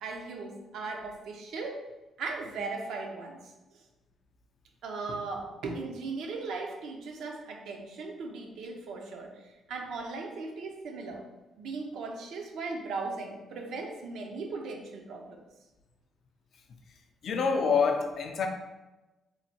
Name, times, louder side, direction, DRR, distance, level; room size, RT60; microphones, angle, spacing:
voice 1, 0.0-1.8 2.2-3.4 3.7-3.8 4.8-11.2 11.6-15.4, right 3 dB, 80° right, 2 dB, 0.5 m, -38 dB
voice 2, 17.2-18.5, left 5 dB, 60° left, 4 dB, 0.4 m, -26 dB
3.0 x 2.1 x 2.7 m, 1.1 s
cardioid pair, 90°, 0 cm